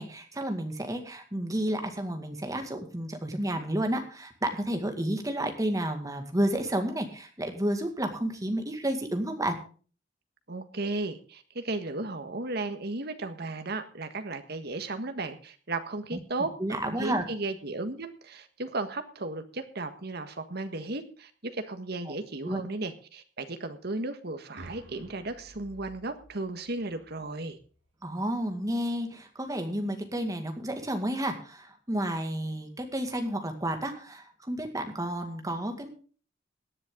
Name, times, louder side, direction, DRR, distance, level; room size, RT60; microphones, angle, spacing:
voice 1, 0.0-9.6 16.1-16.2 16.6-17.2 22.1-22.2 22.4-22.6 28.0-35.9, right 1 dB, 20° right, 5 dB, 2.1 m, -31 dB
voice 2, 10.5-16.5 16.9-27.6, right 2 dB, 60° right, 8 dB, 1.5 m, -35 dB
sound 1, 24.6-28.5, right 1 dB, 80° right, 6.9 m, -53 dB
17.5 x 10.5 x 3.8 m, 0.39 s
head